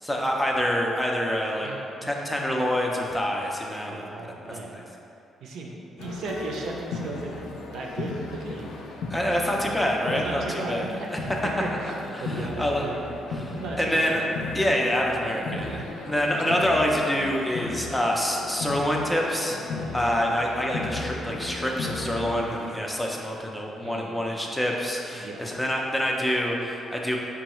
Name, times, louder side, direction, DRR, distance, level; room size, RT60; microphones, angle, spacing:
voice 1, 0.0-1.7 2.0-4.0 4.7-4.8 9.1-10.8 11.1-11.2 11.8-12.9 13.3-14.3 14.5-15.8 16.1-19.6 19.9-27.2, equal, 10° left, -1 dB, 0.5 m, -26 dB
voice 2, 1.6-2.2 3.8-4.8 5.4-9.0 10.1-11.1 11.6-11.9 12.2-13.0 13.5-14.1 15.5-15.9 16.4-16.5 19.7-20.0 22.2-22.5 23.8-24.2 25.1-25.5, right 2 dB, 75° right, -1 dB, 0.5 m, -36 dB
sound 1, 6.0-22.8, left 3 dB, 85° left, 0.4 m, -36 dB
5.1 x 2.3 x 2.9 m, 2.7 s
cardioid pair, 90°, 0 cm